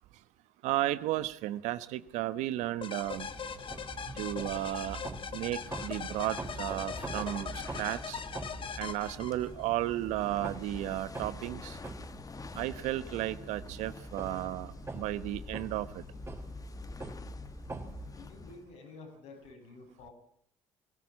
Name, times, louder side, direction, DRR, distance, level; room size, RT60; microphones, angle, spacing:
voice 1, 0.6-3.3 4.2-5.0 5.3-8.2 8.8-11.8 12.6-16.0, right 15 dB, 75° right, 1.1 m, -34 dB
sound 1, 2.8-9.7, left 6 dB, 45° left, 1.8 m, -41 dB
sound 2, 3.0-18.8, left 4 dB, 30° left, 1.3 m, -47 dB
sound 3, 3.3-18.1, right 3 dB, 20° right, 3.8 m, -45 dB
voice 2, 18.1-20.1, left 3 dB, 75° left, 7.1 m, -50 dB
20.5 x 17.0 x 8.5 m
hypercardioid pair, 60°, 12 cm